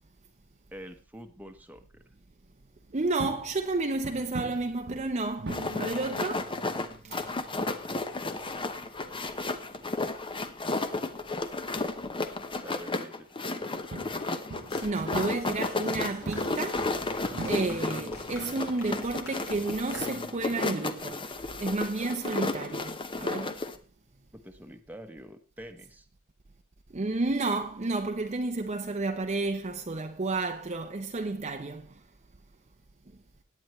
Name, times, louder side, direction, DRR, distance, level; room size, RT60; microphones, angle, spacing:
voice 1, 0.7-2.1 12.5-14.2 24.3-26.1, equal, 10° right, 1.1 m, -47 dB
voice 2, 2.9-6.6 7.0-7.2 14.8-16.9 17.5-21.2 21.6-23.5 26.9-31.9, right 3 dB, 35° right, 0.7 m, -31 dB
sound 1, 2.9-22.3, right 2 dB, 55° right, 1.0 m, -44 dB
sound 2, 5.5-23.8, left 3 dB, 25° left, 0.9 m, -33 dB
sound 3, 14.7-20.5, left 2 dB, 75° left, 3.7 m, -46 dB
17.0 x 9.5 x 3.2 m
head